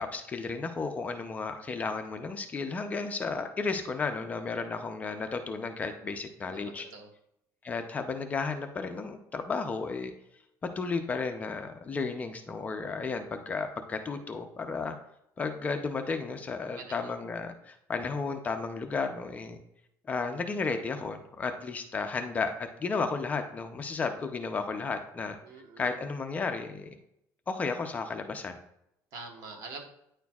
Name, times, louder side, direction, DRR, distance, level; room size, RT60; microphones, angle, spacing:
voice 1, 0.0-6.9 7.6-10.1 10.8-15.0 15.4-19.6 20.1-22.5 22.8-25.4 25.8-26.9 27.5-28.6, left 4 dB, 20° left, 6 dB, 0.5 m, -33 dB
voice 2, 6.5-7.1 16.8-17.2 25.4-25.9 29.1-29.8, right 4 dB, 60° right, 3 dB, 1.2 m, -45 dB
9.3 x 4.4 x 2.3 m, 0.78 s
cardioid pair, 155°, 7 cm